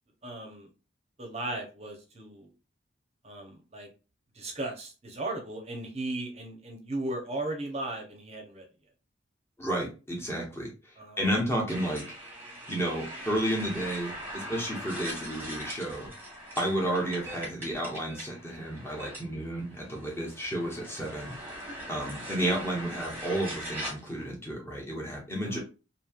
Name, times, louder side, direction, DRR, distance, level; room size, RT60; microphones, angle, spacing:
voice 1, 0.2-0.7 1.2-2.5 3.2-3.9 4.4-8.6 11.0-11.2 25.4-25.6, right 2 dB, 35° right, 2 dB, 0.7 m, -36 dB
voice 2, 9.6-10.7 11.2-12.0 12.7-16.1 16.6-21.6 21.9-25.6, right 1 dB, 15° left, -1 dB, 0.8 m, -32 dB
sound 1, 11.7-24.2, equal, 10° right, 1.1 m, -41 dB
3.0 x 2.7 x 2.3 m, 0.32 s
head